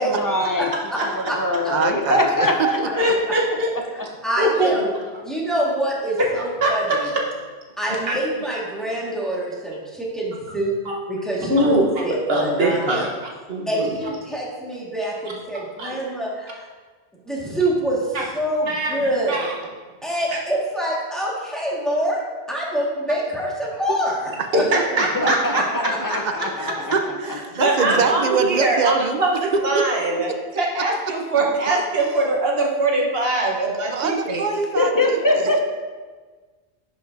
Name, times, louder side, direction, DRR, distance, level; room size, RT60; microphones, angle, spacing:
voice 1, 0.0-0.7 1.1-3.1 25.1-26.9 27.9-28.0 34.7-35.6, left 1 dB, 25° left, 2 dB, 0.6 m, -22 dB
voice 2, 0.6-1.0 1.3-1.4 1.6-1.7 4.2-4.9 5.2-7.1 7.8-10.7 11.1-11.7 12.0-12.2 12.4-13.0 13.7-16.7 17.2-19.5 20.0-22.2 22.5-24.6, right 1 dB, ahead, -6 dB, 1.6 m, -25 dB
voice 3, 1.7-2.5 4.8-4.9 25.2-25.3 26.6-29.2 29.5-29.8 33.9-35.5, right 5 dB, 50° right, 6 dB, 0.6 m, -24 dB
voice 4, 2.7-3.7 4.4-4.8 6.3-7.2 8.1-8.2 11.5-13.1 13.5-13.9 15.8-16.0 18.1-18.2 18.7-18.9 19.3-19.5 24.5-25.6 26.1-26.2 27.5-34.4, right 2 dB, 65° right, -1 dB, 1.3 m, -22 dB
10.5 x 5.3 x 2.6 m, 1.4 s
omnidirectional pair, 1.1 m